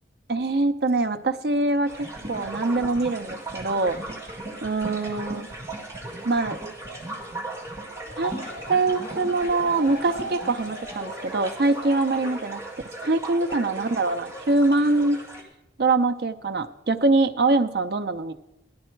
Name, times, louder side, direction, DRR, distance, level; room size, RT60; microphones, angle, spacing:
voice 1, 0.3-4.0 4.6-5.5 6.2-6.6 8.2-8.4 8.7-12.6 13.0-15.2 15.8-18.3, right 3 dB, 60° right, 8 dB, 0.7 m, -23 dB
sound 1, 1.9-15.4, right 2 dB, 15° right, 2.0 m, -38 dB
sound 2, 1.9-11.1, right 1 dB, 40° right, 1.4 m, -41 dB
sound 3, 7.9-12.9, equal, 50° left, 4.3 m, -40 dB
15.5 x 11.5 x 4.5 m, 0.90 s
head